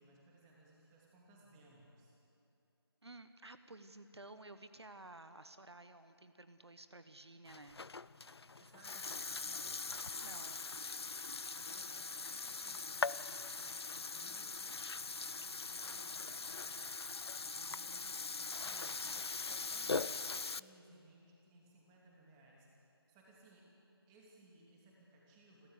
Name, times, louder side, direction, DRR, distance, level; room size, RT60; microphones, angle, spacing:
voice 1, 0.0-2.2 8.6-9.9 11.2-17.0 17.4-25.7, right 1 dB, 15° right, -3 dB, 2.7 m, -63 dB
voice 2, 3.0-7.8 10.2-10.7, right 2 dB, 85° right, 10 dB, 1.2 m, -54 dB
Burping eructation, 7.5-20.6, left 4 dB, 75° left, 0.5 m, -41 dB
29.0 x 13.0 x 8.4 m, 2.8 s
figure-of-eight pair, 160°, 14 cm